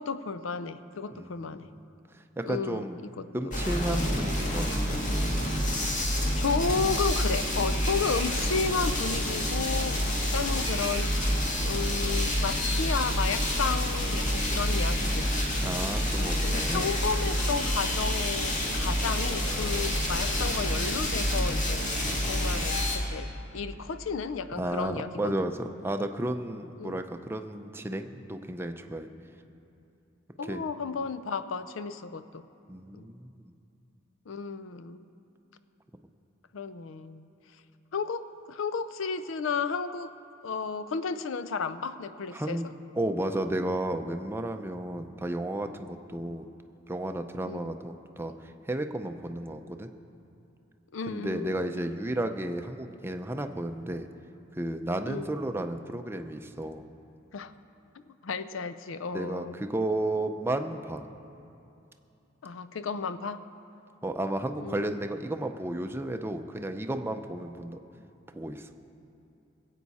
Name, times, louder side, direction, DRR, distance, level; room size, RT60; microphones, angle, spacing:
voice 1, 0.0-1.7 2.4-2.8 3.2-3.6 3.9-4.1 6.3-15.4 16.2-25.5 26.8-27.0 30.4-32.4 32.9-33.1 34.3-35.1 36.5-37.3 37.9-40.1 40.4-42.6 47.5-47.7 50.9-51.7 55.1-55.3 57.3-57.5 58.1-59.6 62.4-63.4 64.6-65.0, left 5 dB, 80° left, 12 dB, 0.5 m, -33 dB
voice 2, 1.1-1.7 2.4-3.0 3.3-5.0 10.0-10.1 15.6-16.9 24.6-29.1 30.5-30.6 32.7-33.3 42.3-42.7 43.0-46.5 46.9-48.3 48.7-49.9 51.1-54.1 54.5-56.8 59.1-61.0 64.0-67.8 68.3-68.7, right 1 dB, 10° right, 6 dB, 0.5 m, -33 dB
sound 1, 3.5-23.0, equal, 40° left, 1.8 m, -28 dB
21.0 x 8.2 x 4.2 m, 2.8 s
head